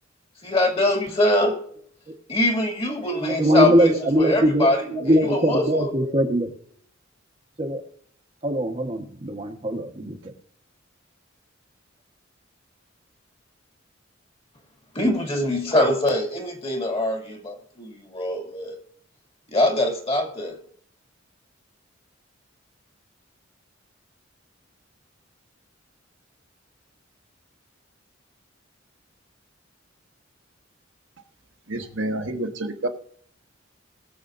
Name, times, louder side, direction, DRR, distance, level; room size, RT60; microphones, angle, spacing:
voice 1, 0.4-1.8 2.3-6.4 14.9-18.8 19.5-20.6, left 1 dB, 30° left, 3 dB, 2.3 m, -23 dB
voice 2, 3.4-4.7 5.0-6.5 7.6-7.8 8.4-10.2, equal, 30° right, 3 dB, 1.3 m, -21 dB
voice 3, 31.7-32.9, right 1 dB, 70° right, 3 dB, 1.3 m, -28 dB
22.0 x 7.3 x 2.6 m, 0.63 s
head